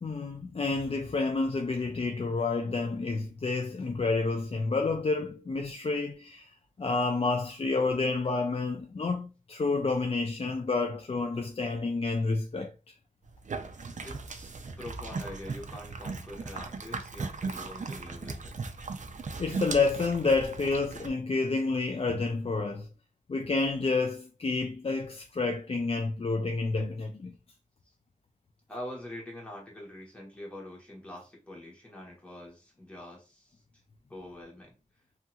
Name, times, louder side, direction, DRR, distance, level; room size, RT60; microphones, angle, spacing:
voice 1, 0.0-6.5 6.8-12.7 19.4-22.9 23.3-27.3, left 3 dB, 45° left, 0.4 m, -29 dB
sound 1, 13.3-21.1, right 4 dB, 60° right, 0.4 m, -38 dB
voice 2, 14.0-14.5 14.8-18.5 28.7-33.5 34.1-34.7, left 1 dB, 10° left, 1.2 m, -44 dB
2.8 x 2.7 x 2.3 m
wide cardioid pair, 85°, 14 cm